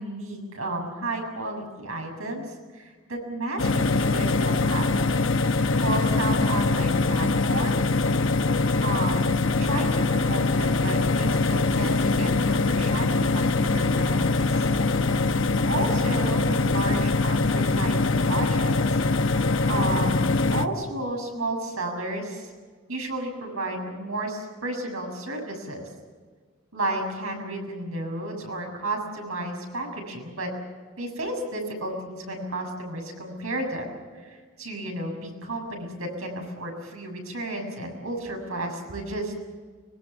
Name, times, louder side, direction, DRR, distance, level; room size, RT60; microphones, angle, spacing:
voice 1, 0.0-2.5 2.7-4.9 5.8-7.8 8.8-14.7 15.6-19.0 19.7-22.5 22.9-25.8 26.7-30.5 31.0-33.9 34.2-39.4, right 2 dB, 85° right, 1 dB, 7.2 m, -32 dB
sound 1, 3.6-20.7, left 3 dB, 70° left, 1.0 m, -23 dB
25.0 x 21.0 x 7.2 m, 1.5 s
head